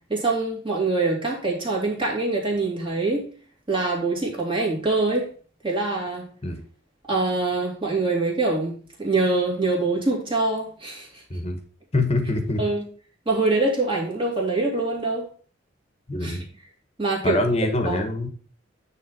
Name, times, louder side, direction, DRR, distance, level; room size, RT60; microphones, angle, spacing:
voice 1, 0.1-3.3 3.7-5.3 5.6-6.3 7.1-11.2 12.6-12.8 13.3-15.3 16.2-16.4 17.0-17.4 17.8-18.0, right 3 dB, 25° right, -2 dB, 2.4 m, -24 dB
voice 2, 11.9-12.6 16.1-16.5 17.2-18.3, left 2 dB, 30° left, 6 dB, 1.2 m, -24 dB
9.2 x 3.6 x 5.8 m, 0.43 s
head